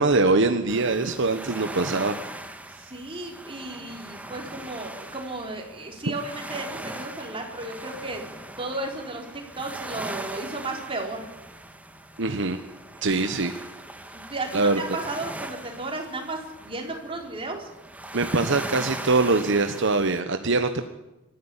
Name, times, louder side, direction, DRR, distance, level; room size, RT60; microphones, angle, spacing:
voice 1, 0.0-2.2 6.1-6.2 12.2-12.6 13.0-13.5 14.5-14.8 18.1-20.9, right 3 dB, 65° right, 8 dB, 1.2 m, -23 dB
sound 1, 0.7-20.2, right 1 dB, 5° right, 1.7 m, -40 dB
voice 2, 2.7-8.2 8.6-11.3 14.1-17.7, right 2 dB, 25° right, 1 dB, 4.4 m, -34 dB
24.5 x 14.0 x 10.0 m, 0.98 s
head